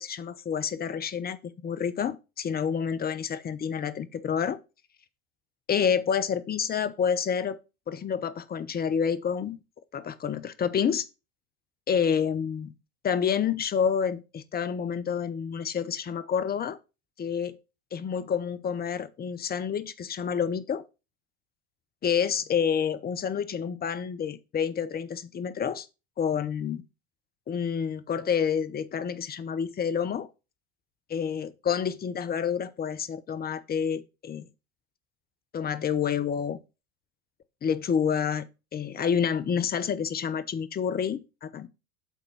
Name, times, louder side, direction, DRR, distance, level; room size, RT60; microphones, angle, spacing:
voice 1, 0.0-4.6 5.7-7.6 7.9-9.6 9.9-11.1 11.9-12.7 13.0-16.8 17.2-17.6 17.9-20.8 22.0-25.9 26.2-26.8 27.5-30.3 31.1-34.5 35.5-36.6 37.6-41.7, left 7 dB, 20° left, 0.8 m, -28 dB
8.2 x 3.7 x 5.6 m
hypercardioid pair, 85°, 44 cm